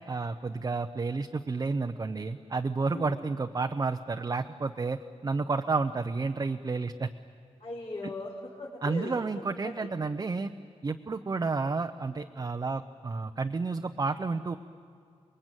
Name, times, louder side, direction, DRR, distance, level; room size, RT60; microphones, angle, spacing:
voice 1, 0.0-7.1 8.0-8.1 8.8-10.5 10.8-14.6, right 4 dB, 35° right, 5 dB, 0.7 m, -31 dB
voice 2, 7.6-9.9, left 2 dB, 60° left, -6 dB, 4.6 m, -39 dB
30.0 x 21.5 x 9.1 m, 2.3 s
wide cardioid pair, 140°, 11 cm